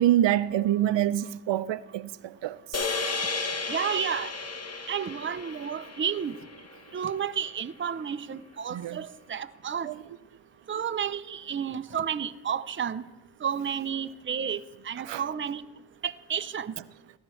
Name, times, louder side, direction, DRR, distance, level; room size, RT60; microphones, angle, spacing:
voice 1, 0.0-2.8 8.7-9.0 9.8-10.0 15.0-15.2, right 12 dB, 75° right, 0.5 m, -26 dB
sound 1, 2.7-7.1, left 4 dB, 35° left, 1.3 m, -33 dB
voice 2, 3.7-4.3 4.9-6.4 6.9-9.9 10.7-13.0 13.4-15.6 16.0-16.7, right 8 dB, 25° right, 0.5 m, -31 dB
17.5 x 13.0 x 3.2 m
cardioid pair, 60°, 44 cm